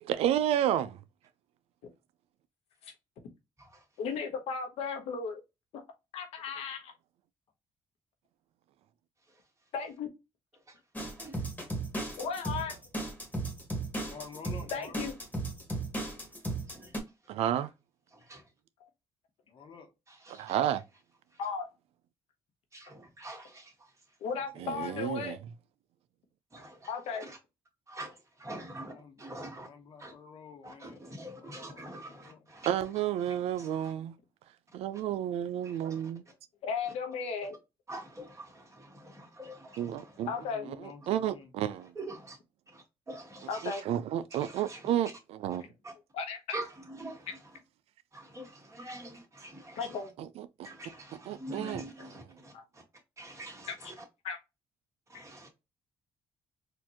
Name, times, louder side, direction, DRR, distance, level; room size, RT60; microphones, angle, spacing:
voice 1, 0.0-1.0 17.3-17.7 20.3-20.8 24.6-25.4 32.7-34.2 34.7-36.2 39.8-40.3 40.7-41.9 43.6-45.7 50.2-50.7 51.3-52.1, right 11 dB, 85° right, 0.4 m, -31 dB
voice 2, 4.0-5.4 6.1-6.9 9.7-10.1 12.2-12.7 14.7-15.1 21.4-21.7 24.2-25.4 26.9-27.2 36.6-37.6 40.3-40.6 43.5-43.8 46.1-46.6 49.8-50.1 52.5-52.6 54.2-54.4 55.1-55.2, left 5 dB, 85° left, 1.0 m, -35 dB
sound 1, 11.0-17.0, right 2 dB, 15° left, 1.5 m, -35 dB
voice 3, 14.0-15.0 19.5-20.2 24.5-25.1 28.7-29.3 29.6-32.4 40.4-41.5, left 5 dB, 55° left, 1.1 m, -50 dB
voice 4, 16.7-17.0 18.1-18.4 20.1-20.6 22.7-23.9 26.5-27.4 27.9-29.7 30.0-30.1 30.6-32.7 33.2-33.9 35.6-36.0 36.9-37.0 37.9-40.4 42.0-42.4 42.7-43.8 44.3-44.9 45.8-45.9 46.5-47.4 48.1-50.0 50.6-52.8 53.2-54.0 55.1-55.5, right 1 dB, 30° right, 1.8 m, -45 dB
4.3 x 2.6 x 2.9 m
cardioid pair, 90°, 10 cm